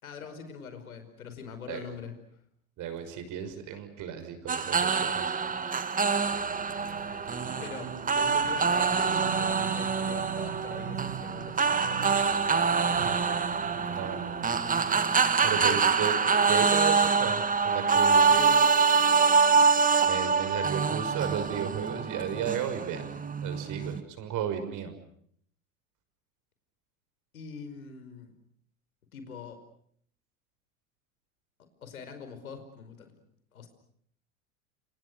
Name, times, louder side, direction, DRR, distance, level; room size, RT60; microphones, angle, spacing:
voice 1, 0.0-2.1 7.6-11.7 15.6-15.9 27.3-28.3 29.1-29.6 31.8-33.2 33.5-33.7, left 6 dB, 80° left, 9 dB, 5.2 m, -43 dB
voice 2, 2.8-5.4 12.9-14.6 15.4-18.6 20.0-23.1 23.4-24.9, right 8 dB, 45° right, 9 dB, 6.1 m, -34 dB
sound 1, 4.5-24.0, right 5 dB, 20° right, 2.2 m, -25 dB
sound 2, 6.0-16.5, right 9 dB, 80° right, 5.8 m, -43 dB
28.5 x 27.5 x 6.5 m, 0.64 s
hypercardioid pair, 90°, 42 cm